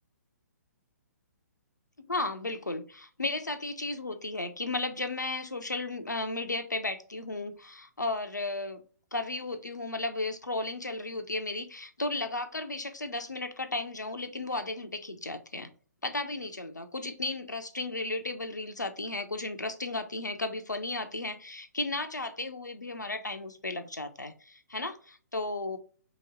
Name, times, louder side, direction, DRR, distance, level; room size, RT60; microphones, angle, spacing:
voice 1, 2.1-8.8 9.1-15.7 16.0-25.8, left 2 dB, 90° left, 0.6 m, -34 dB
3.1 x 2.9 x 4.2 m
figure-of-eight pair, 130°, 9 cm